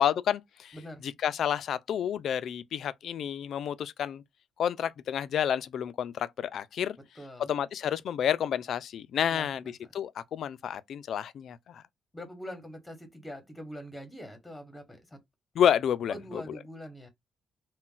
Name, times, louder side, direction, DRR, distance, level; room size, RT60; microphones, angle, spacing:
voice 1, 0.0-0.8 1.0-4.2 4.6-7.0 7.4-11.8 15.5-16.4, left 9 dB, 65° left, 0.3 m, -30 dB
voice 2, 9.3-9.7 12.1-15.2 16.1-17.1, equal, 10° left, 1.1 m, -43 dB
2.4 x 2.1 x 3.7 m
cardioid pair, 90°, 0 cm